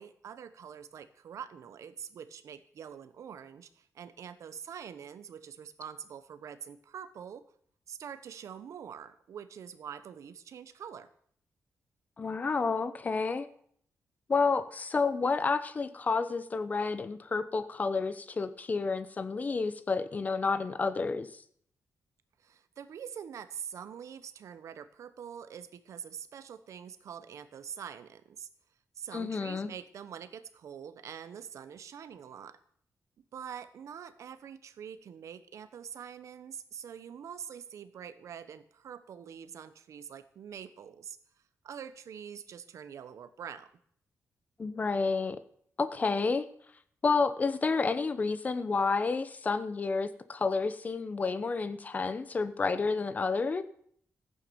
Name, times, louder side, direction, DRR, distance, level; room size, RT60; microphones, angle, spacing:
voice 1, 0.0-7.4 7.9-11.1 22.4-28.5 28.9-32.6 33.3-41.2 41.6-43.7, right 8 dB, 70° right, 13 dB, 1.1 m, -45 dB
voice 2, 12.2-13.5 14.3-21.3 29.1-29.7 44.6-45.4 45.8-46.5 47.0-53.6, left 4 dB, 30° left, 13 dB, 0.9 m, -30 dB
14.5 x 9.4 x 7.0 m, 0.63 s
wide cardioid pair, 165°, 6 cm